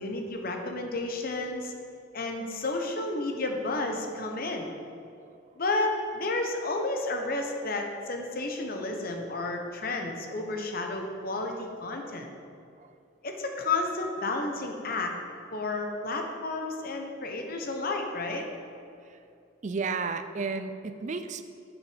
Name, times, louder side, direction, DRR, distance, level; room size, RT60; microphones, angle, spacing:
voice 1, 0.0-1.7 2.1-4.7 5.6-12.3 13.2-15.1 15.5-18.4, left 2 dB, 50° left, 3 dB, 0.9 m, -31 dB
voice 2, 19.6-21.4, right 4 dB, 40° right, 9 dB, 0.4 m, -32 dB
7.3 x 6.5 x 5.0 m, 2.5 s
head